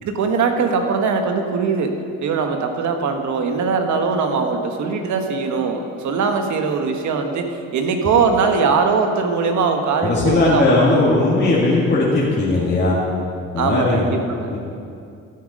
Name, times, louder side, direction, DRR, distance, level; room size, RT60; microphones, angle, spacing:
voice 1, 0.0-11.0 13.6-14.5, right 5 dB, 70° right, 5 dB, 1.3 m, -21 dB
voice 2, 10.0-13.0 13.5-14.1 14.5-14.6, left 2 dB, 35° left, -6 dB, 2.1 m, -18 dB
13.0 x 7.6 x 5.3 m, 2.5 s
cardioid pair, 90°, 30 cm